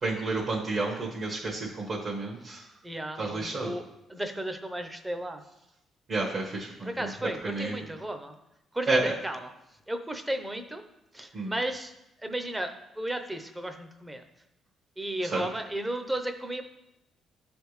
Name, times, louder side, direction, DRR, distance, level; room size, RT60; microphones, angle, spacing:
voice 1, 0.0-2.6 3.2-3.7 6.1-7.8 8.9-9.1 11.3-11.5 15.3-15.4, right 3 dB, 50° right, -4 dB, 1.2 m, -30 dB
voice 2, 2.8-3.8 4.1-5.4 6.9-8.3 8.7-9.5 9.9-10.8 11.1-11.9 12.2-14.2 15.0-16.6, right 1 dB, 10° right, 7 dB, 0.6 m, -34 dB
9.5 x 3.4 x 3.2 m, 0.88 s
cardioid pair, 90°, 0 cm